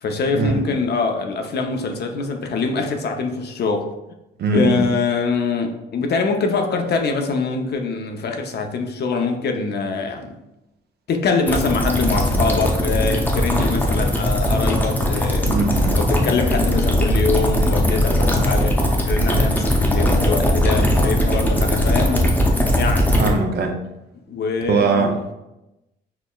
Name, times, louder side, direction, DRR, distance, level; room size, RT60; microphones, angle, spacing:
voice 1, 0.0-3.9 4.5-10.4 11.1-15.5 15.9-18.8 19.1-22.3 22.7-23.1 24.3-25.2, left 4 dB, 55° left, 4 dB, 0.6 m, -23 dB
voice 2, 4.4-4.8 15.4-16.0 23.2-23.8 24.7-25.2, right 4 dB, 55° right, 4 dB, 0.6 m, -20 dB
sound 1, 11.5-23.3, left 1 dB, 10° left, 0.7 m, -19 dB
5.6 x 2.1 x 2.3 m, 0.94 s
cardioid pair, 90°, 20 cm